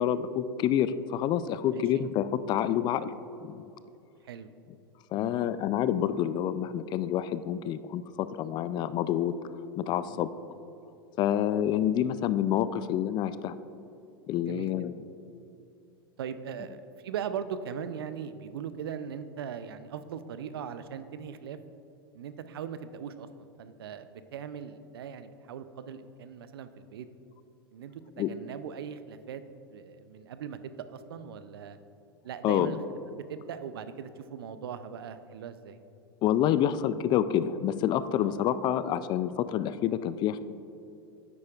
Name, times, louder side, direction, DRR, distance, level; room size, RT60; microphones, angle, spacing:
voice 1, 0.0-3.1 3.4-3.6 5.1-9.3 9.8-10.3 11.2-13.6 14.3-14.9 28.2-28.3 32.4-32.8 36.2-40.4, left 10 dB, 35° left, 14 dB, 0.3 m, -28 dB
voice 2, 1.7-2.0 4.2-4.5 5.1-5.6 10.1-10.2 14.5-14.7 16.2-21.6 22.1-27.1 27.7-29.4 29.7-31.8 32.2-32.8 33.1-35.8 38.2-38.3, right 8 dB, 75° right, 11 dB, 0.5 m, -40 dB
9.7 x 8.6 x 2.4 m, 2.8 s
hypercardioid pair, 95°, 13 cm